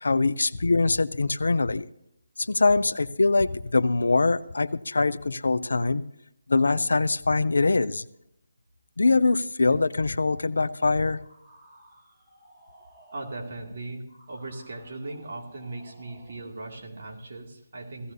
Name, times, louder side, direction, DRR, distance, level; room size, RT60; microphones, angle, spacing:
voice 1, 0.0-1.9 2.4-6.0 6.5-8.1 9.0-11.2, left 3 dB, 75° left, 16 dB, 0.6 m, -23 dB
sound 1, 11.2-16.6, right 1 dB, 25° right, 4.1 m, -56 dB
voice 2, 13.1-18.1, right 2 dB, 55° right, -1 dB, 2.4 m, -38 dB
17.0 x 14.5 x 2.8 m, 0.80 s
figure-of-eight pair, 150°, 0 cm